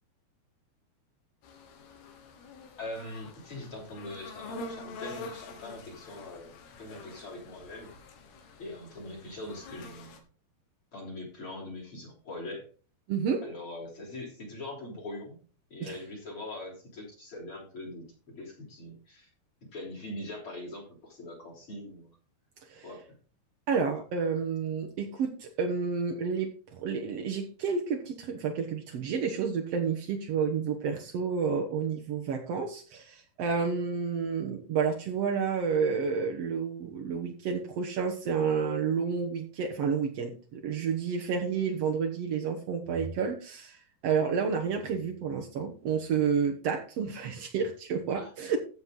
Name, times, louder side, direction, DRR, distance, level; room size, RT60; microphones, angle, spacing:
sound 1, 1.4-10.2, left 3 dB, 85° left, 3.7 m, -46 dB
voice 1, 2.8-7.9 8.6-10.2 10.9-12.7 13.4-15.4 15.7-19.3 19.7-22.1 22.8-23.0 44.4-44.5 48.2-48.3, left 1 dB, 35° left, -2 dB, 4.0 m, -42 dB
voice 2, 13.1-13.4 15.8-16.0 22.7-22.9 23.7-43.8 44.0-48.6, right 6 dB, 85° right, 1 dB, 1.4 m, -30 dB
15.0 x 6.2 x 3.8 m, 0.39 s
omnidirectional pair, 4.6 m